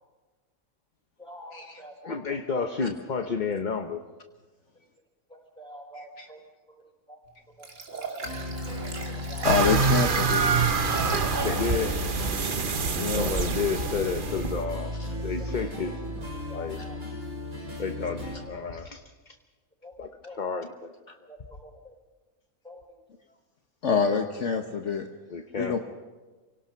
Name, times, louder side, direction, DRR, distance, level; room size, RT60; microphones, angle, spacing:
voice 1, 1.2-2.2 2.5-2.6 5.3-6.4 7.1-7.2 7.6-7.7 7.9-8.0 8.7-9.5 11.3-11.6 13.7-14.0 15.7-15.8 16.5-17.0 19.8-19.9 20.2-20.4 21.3-21.9 22.6-22.8 24.1-24.2, equal, 5° left, -1 dB, 6.1 m, -46 dB
voice 2, 2.0-4.0 11.4-12.0 13.2-14.9 15.2-16.0 16.5-16.8 17.8-19.4 20.0-20.9 24.3-24.5 25.3-25.8, left 5 dB, 35° left, 6 dB, 1.0 m, -31 dB
voice 3, 5.9-6.3 9.4-10.4 12.9-13.3 15.0-15.1 23.8-25.1 25.6-25.8, left 5 dB, 60° left, 4 dB, 1.4 m, -26 dB
Liquid, 7.6-11.8 12.3-12.4, right 2 dB, 60° right, 2.9 m, -37 dB
sound 1, 8.2-18.4, left 1 dB, 80° right, 7.3 m, -35 dB
sound 2, 9.4-14.6, right 5 dB, 40° right, 1.0 m, -26 dB
28.5 x 18.5 x 5.8 m, 1.3 s
omnidirectional pair, 1.5 m